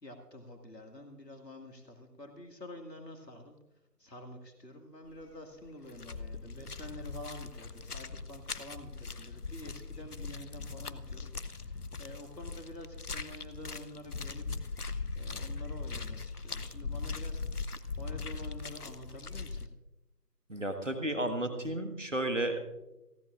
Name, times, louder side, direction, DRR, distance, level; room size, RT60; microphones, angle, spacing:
voice 1, 0.0-3.6 4.0-11.3 11.6-14.4 15.2-17.4 18.0-19.7, left 1 dB, 85° left, 4 dB, 2.1 m, -48 dB
sound 1, 5.1-5.4 5.6-19.7, left 4 dB, 65° left, 0.8 m, -40 dB
voice 2, 20.5-22.7, right 1 dB, 50° right, 7 dB, 1.7 m, -33 dB
29.0 x 11.0 x 2.5 m, 0.99 s
figure-of-eight pair, 175°, 48 cm